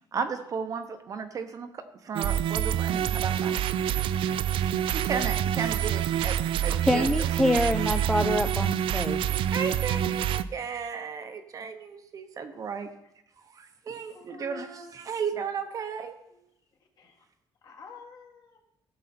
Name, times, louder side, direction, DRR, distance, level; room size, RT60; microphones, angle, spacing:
voice 1, 0.1-3.6 4.9-7.3 9.5-12.9 13.5-16.2, right 6 dB, 40° right, 8 dB, 0.8 m, -34 dB
sound 1, 2.1-10.4, right 10 dB, 75° right, 0.4 m, -27 dB
voice 2, 6.8-9.2, left 1 dB, 5° left, 7 dB, 0.3 m, -26 dB
voice 3, 14.1-14.9 16.3-16.4 17.0-17.2 17.6-18.6, left 4 dB, 50° left, 2 dB, 1.7 m, -47 dB
16.0 x 6.4 x 4.3 m, 0.82 s
cardioid pair, 170°, 9 cm